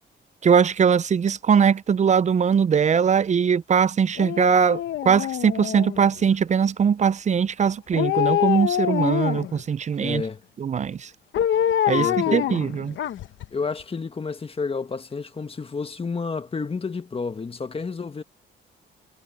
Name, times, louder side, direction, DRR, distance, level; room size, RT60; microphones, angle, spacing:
voice 1, 0.4-10.2 10.6-11.1 11.9-13.0, right 7 dB, 35° right, 0.5 m, -21 dB
Dog, 4.2-6.2 7.9-9.6 11.3-13.5 13.8-13.9, left 11 dB, 70° left, 1.2 m, -25 dB
voice 2, 10.0-10.4 12.0-12.5 13.5-18.2, left 4 dB, 30° left, 1.6 m, -30 dB
cardioid pair, 90°, 20 cm